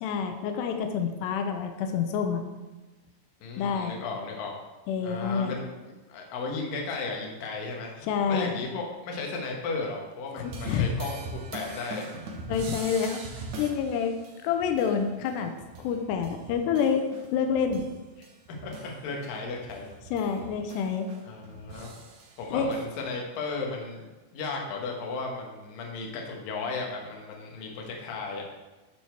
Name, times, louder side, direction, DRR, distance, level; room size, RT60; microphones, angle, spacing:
voice 1, 0.0-2.5 3.6-4.0 4.9-5.6 8.1-8.6 10.4-10.9 12.5-13.2 13.6-14.2 14.4-15.5 15.8-17.0 17.3-17.8 20.1-21.1 22.5-22.7, left 7 dB, 90° left, 5 dB, 2.8 m, -27 dB
voice 2, 3.4-4.5 5.0-12.0 18.2-18.3 18.6-19.9 21.3-21.9 22.4-28.4, left 3 dB, 65° left, 0 dB, 2.9 m, -35 dB
sound 1, 10.4-17.9 18.2-22.8, right 3 dB, 60° right, 2.1 m, -42 dB
13.0 x 4.3 x 4.5 m, 1.2 s
omnidirectional pair, 4.7 m